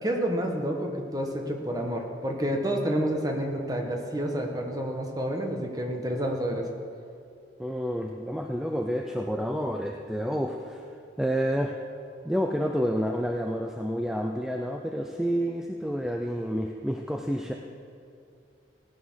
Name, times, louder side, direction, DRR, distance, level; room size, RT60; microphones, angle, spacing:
voice 1, 0.0-6.7, right 1 dB, 20° right, 2 dB, 1.4 m, -29 dB
voice 2, 7.6-10.8 11.2-11.7 12.2-17.5, equal, 5° right, 2 dB, 0.5 m, -29 dB
16.0 x 9.6 x 6.3 m, 2.5 s
head